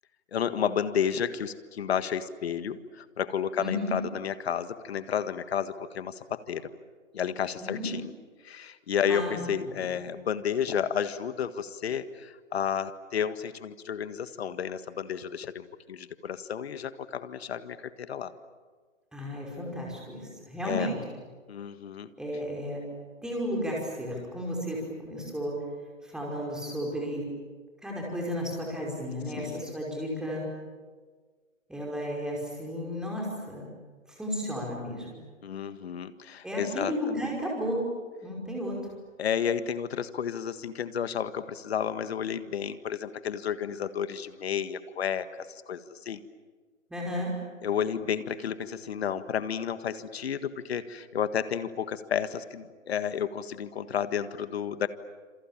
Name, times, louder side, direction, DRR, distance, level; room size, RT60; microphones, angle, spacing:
voice 1, 0.3-6.6 7.1-8.1 8.4-18.3 20.6-20.9 21.5-22.1 29.4-29.8 35.4-36.9 37.2-37.3 39.2-46.2 47.6-54.9, left 8 dB, 50° left, 12 dB, 1.7 m, -31 dB
voice 2, 3.6-3.9 7.6-7.9 9.1-9.9 19.1-21.0 22.2-22.8 23.2-25.5 26.0-27.3 27.8-30.5 31.7-33.7 34.1-35.2 36.4-37.8 38.2-38.8 46.9-47.3, equal, ahead, -3 dB, 5.2 m, -33 dB
28.0 x 27.5 x 7.5 m, 1.5 s
hypercardioid pair, 150°, 39 cm